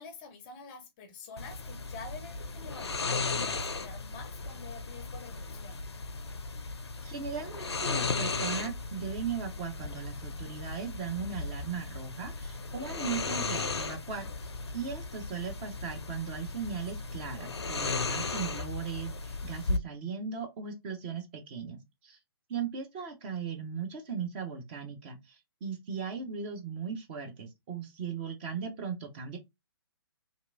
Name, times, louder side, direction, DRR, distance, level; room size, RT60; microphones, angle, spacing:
voice 1, 0.0-5.8, left 4 dB, 20° left, 0.6 m, -47 dB
sound 1, 1.4-19.8, left 4 dB, 75° left, 0.4 m, -36 dB
voice 2, 7.0-14.3 14.7-22.2 22.5-29.4, right 6 dB, 25° right, 0.5 m, -38 dB
2.9 x 2.3 x 2.5 m
figure-of-eight pair, 130°, 14 cm